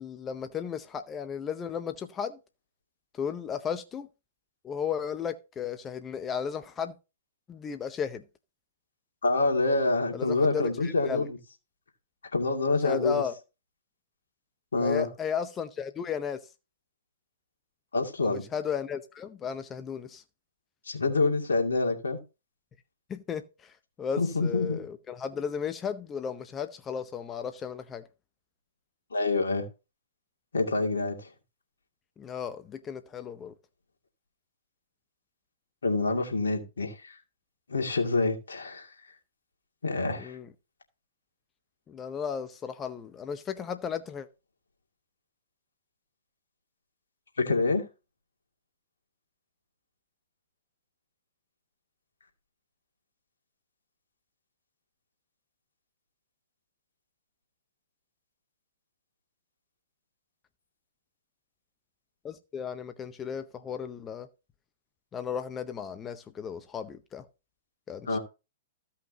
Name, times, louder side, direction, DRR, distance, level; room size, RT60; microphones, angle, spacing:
voice 1, 0.0-2.4 3.1-4.1 4.6-6.9 7.5-8.2 10.1-11.3 12.8-13.3 14.7-16.5 18.2-20.2 23.1-28.0 32.2-33.5 40.2-40.5 41.9-44.3 62.2-64.3 65.1-67.2 67.9-68.2, left 7 dB, 20° left, 0.7 m, -35 dB
voice 2, 9.2-11.4 12.3-13.2 14.7-15.1 17.9-18.5 20.9-22.2 24.2-24.8 29.1-29.7 30.5-31.3 35.8-37.2 37.7-38.9 39.8-40.4 47.4-47.9 68.1-68.2, left 3 dB, 75° left, 2.4 m, -27 dB
15.0 x 5.7 x 2.8 m
figure-of-eight pair, 110°, 0 cm